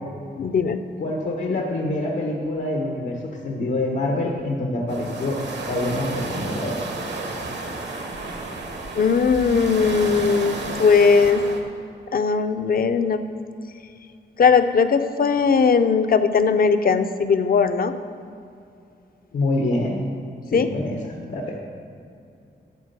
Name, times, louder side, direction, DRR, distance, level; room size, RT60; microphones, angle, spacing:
voice 1, 0.4-0.8 9.0-11.4 12.1-13.2 14.4-17.9 20.5-20.7, left 5 dB, 55° left, 9 dB, 0.6 m, -19 dB
voice 2, 1.0-5.4 5.7-6.8 19.3-20.0 20.5-21.0 21.3-21.6, left 2 dB, 90° left, 0 dB, 1.3 m, -26 dB
sound 1, 4.9-11.6, right 3 dB, 70° right, 1.3 m, -32 dB
12.5 x 4.4 x 8.1 m, 2.5 s
wide cardioid pair, 95°, 18 cm